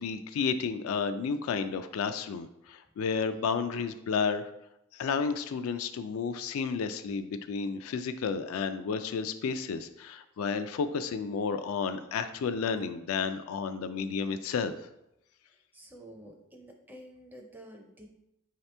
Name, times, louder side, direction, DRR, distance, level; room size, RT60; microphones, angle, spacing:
voice 1, 0.0-4.5 4.9-14.9, left 5 dB, 75° left, 10 dB, 0.3 m, -32 dB
voice 2, 15.7-18.1, equal, 10° right, 2 dB, 0.4 m, -50 dB
4.8 x 2.9 x 3.3 m, 0.85 s
head